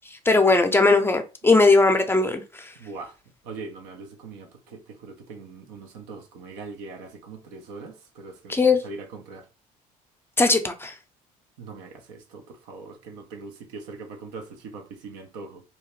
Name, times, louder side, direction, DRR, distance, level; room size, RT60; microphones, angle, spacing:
voice 1, 0.3-2.7 8.5-8.8 10.4-10.9, left 3 dB, 15° left, 0.5 m, -19 dB
voice 2, 2.8-3.1 3.4-8.6 8.8-9.4 11.6-15.6, right 4 dB, 80° right, 0.6 m, -41 dB
2.8 x 2.1 x 3.0 m
hypercardioid pair, 70°, 18 cm